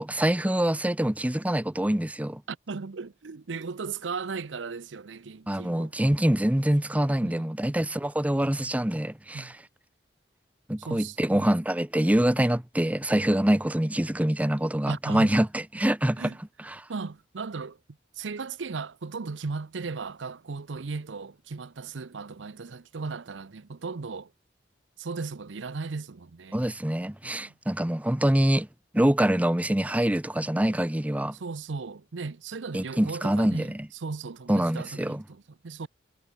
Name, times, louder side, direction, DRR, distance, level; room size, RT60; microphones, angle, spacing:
voice 1, 0.0-2.4 5.5-9.5 10.7-16.3 16.6-16.9 26.5-28.7 28.9-31.4 32.7-33.9 34.5-35.2, right 1 dB, 10° right, 0.6 m, -25 dB
voice 2, 2.5-5.9 7.2-7.5 9.3-9.5 10.8-11.5 14.9-15.3 16.2-16.4 16.9-17.8 18.2-24.3 25.0-26.6 27.2-27.5 31.3-35.9, right 4 dB, 85° right, 0.7 m, -36 dB
head